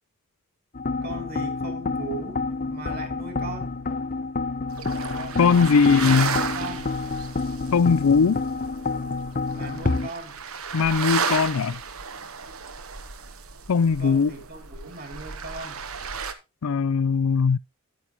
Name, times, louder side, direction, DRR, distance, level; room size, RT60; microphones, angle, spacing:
sound 1, 0.7-10.1, left 3 dB, 40° left, 0.7 m, -29 dB
voice 1, 1.0-2.4 2.7-3.7 5.1-6.9 9.5-10.4 14.0-15.9, right 2 dB, 45° right, 2.6 m, -38 dB
sound 2, 4.7-16.3, right 6 dB, 75° right, 1.1 m, -33 dB
voice 2, 5.4-6.4 7.7-8.4 10.7-11.8 13.7-14.3 16.6-17.6, left 5 dB, 75° left, 0.4 m, -19 dB
10.0 x 9.3 x 2.9 m
head